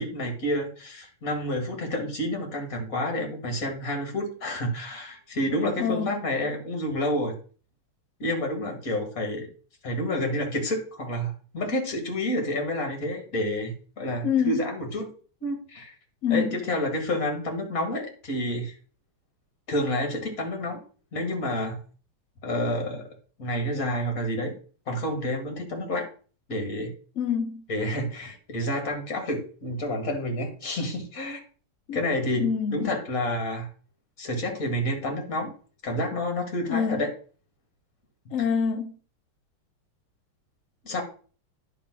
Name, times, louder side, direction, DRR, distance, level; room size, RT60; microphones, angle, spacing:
voice 1, 0.0-7.4 8.2-9.5 9.8-15.1 15.4-15.9 16.3-18.8 19.7-20.8 21.1-21.8 22.4-23.1 23.4-24.5 24.9-26.1 26.5-26.9 27.7-31.4 31.9-33.7 34.2-35.5 35.8-37.1 40.8-41.0, left 1 dB, 40° left, 2.3 m, -29 dB
voice 2, 5.8-6.1 14.2-14.6 16.2-16.6 27.2-27.6 31.9-32.0 32.4-32.9 36.7-37.0 38.3-38.9, left 7 dB, 70° left, 0.7 m, -26 dB
10.0 x 3.8 x 6.0 m
omnidirectional pair, 2.4 m